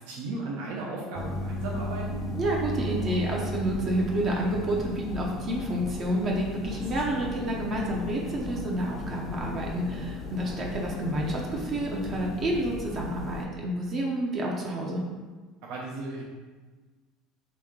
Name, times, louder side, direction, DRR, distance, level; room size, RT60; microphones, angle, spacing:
voice 1, 0.0-2.2 15.6-16.2, right 2 dB, 75° right, -3 dB, 0.6 m, -35 dB
sound 1, 1.1-13.5, left 1 dB, 25° left, 0.4 m, -35 dB
voice 2, 2.4-15.0, right 1 dB, 35° right, -1 dB, 0.6 m, -29 dB
3.1 x 2.7 x 3.6 m, 1.4 s
supercardioid pair, 135°, 0 cm